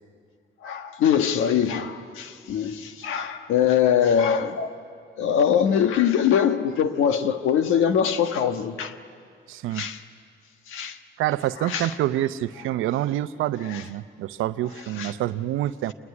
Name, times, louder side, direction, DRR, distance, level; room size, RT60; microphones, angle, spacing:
voice 1, 0.6-4.8 5.2-8.9 9.7-10.0 10.7-11.0 11.6-11.9 13.7-13.8 15.0-15.1, left 8 dB, 90° left, 1.4 m, -23 dB
voice 2, 9.5-9.9 11.2-15.9, right 13 dB, 90° right, 0.7 m, -27 dB
27.0 x 21.0 x 9.9 m
cardioid pair, 90°, 20 cm